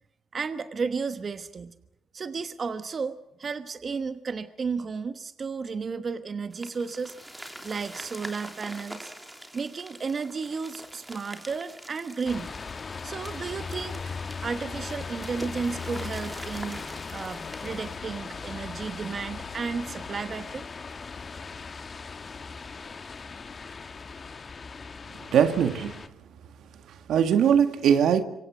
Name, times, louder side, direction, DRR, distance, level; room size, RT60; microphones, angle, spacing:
voice 1, 0.3-1.8 2.1-7.2 7.6-9.1 9.5-12.5 13.0-14.0 14.4-20.6, right 5 dB, 40° right, 1.1 m, -33 dB
sound 1, 6.5-18.0, right 1 dB, 10° right, 3.4 m, -45 dB
sound 2, 12.3-26.1, left 5 dB, 35° left, 1.5 m, -38 dB
voice 2, 25.2-26.0 26.9-28.2, right 8 dB, 75° right, 1.8 m, -21 dB
26.5 x 24.5 x 6.2 m
cardioid pair, 90°, 0 cm